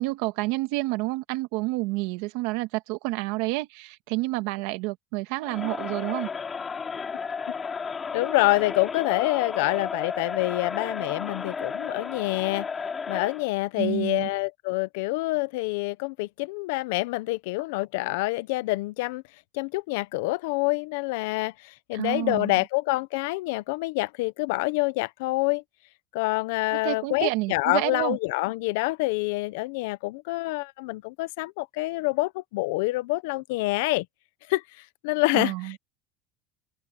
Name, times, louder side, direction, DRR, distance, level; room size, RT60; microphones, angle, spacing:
voice 1, 0.0-6.3 13.8-14.3 21.9-22.6 26.7-28.2 35.3-35.8, right 21 dB, 70° right, 1.4 m, -29 dB
Crowd, 5.4-13.5, left 5 dB, 20° left, 2.9 m, -33 dB
voice 2, 8.1-12.7 13.1-19.2 19.5-25.6 26.1-34.1 34.5-34.6 35.0-35.5, left 22 dB, 80° left, 0.6 m, -27 dB
open air
cardioid pair, 160°, 0 cm